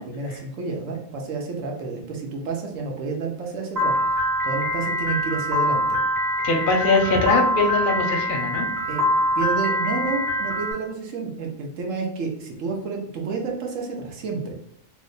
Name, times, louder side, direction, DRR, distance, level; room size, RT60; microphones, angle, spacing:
voice 1, 0.0-6.0 6.4-6.5 8.9-9.0 9.4-14.5, right 4 dB, 75° right, 1 dB, 1.0 m, -30 dB
Piano, 3.8-10.7, equal, 35° right, 1.2 m, -24 dB
voice 2, 6.4-8.6, left 3 dB, 50° left, 1 dB, 0.7 m, -21 dB
2.9 x 2.1 x 3.8 m, 0.68 s
omnidirectional pair, 1.4 m